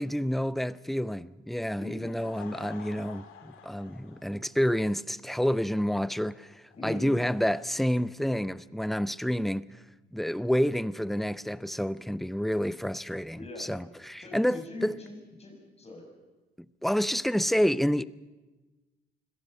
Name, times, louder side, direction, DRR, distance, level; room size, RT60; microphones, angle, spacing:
voice 1, 0.0-9.8 10.1-14.9 16.8-18.0, equal, ahead, 0.6 m, -29 dB
Laughter / Crowd, 1.7-8.6, left 8 dB, 85° left, 2.3 m, -52 dB
voice 2, 1.7-2.1 6.7-7.2 13.3-13.7 14.2-16.1, left 2 dB, 30° left, 7.1 m, -41 dB
25.0 x 17.5 x 6.8 m
cardioid pair, 90°, 20 cm